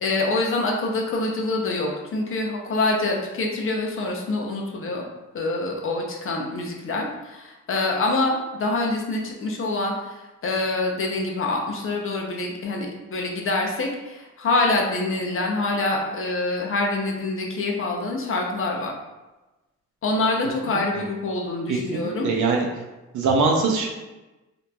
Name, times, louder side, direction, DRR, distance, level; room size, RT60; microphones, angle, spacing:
voice 1, 0.0-5.0 5.3-18.9 20.0-22.3, left 2 dB, 45° left, 0 dB, 0.6 m, -25 dB
voice 2, 21.7-22.7 23.1-23.9, right 4 dB, 75° right, 0 dB, 0.6 m, -22 dB
2.9 x 2.5 x 2.3 m, 1.1 s
cardioid pair, 90°, 30 cm